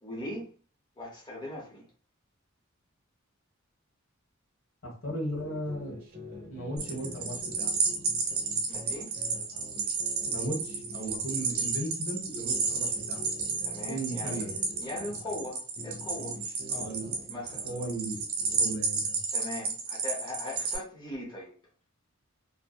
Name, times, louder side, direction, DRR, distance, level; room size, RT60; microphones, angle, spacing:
voice 1, 0.0-0.5 1.0-1.8 8.7-9.1 13.6-14.5 14.8-16.4 17.3-17.7 19.3-21.5, left 1 dB, 20° left, 0.7 m, -39 dB
voice 2, 4.8-6.0 6.5-7.7 10.2-13.2 13.9-14.7 16.7-17.1 17.6-18.2 18.5-19.2, right 1 dB, 70° left, 1.1 m, -36 dB
sound 1, 5.3-11.8 12.2-15.5 15.8-18.9, left 1 dB, 45° right, 0.7 m, -46 dB
sound 2, 6.8-20.8, right 4 dB, 80° right, 0.7 m, -32 dB
2.6 x 2.0 x 2.3 m
head